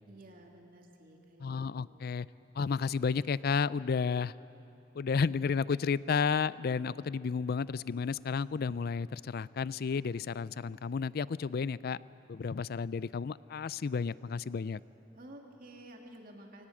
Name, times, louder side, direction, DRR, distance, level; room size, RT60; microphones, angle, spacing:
voice 1, 0.0-1.5 1.8-2.1 15.1-16.7, right 1 dB, 50° right, 1 dB, 2.5 m, -52 dB
voice 2, 1.4-2.3 2.6-4.3 4.9-12.0 12.3-14.8, left 5 dB, 55° left, 19 dB, 0.4 m, -32 dB
22.5 x 18.0 x 8.6 m, 2.9 s
head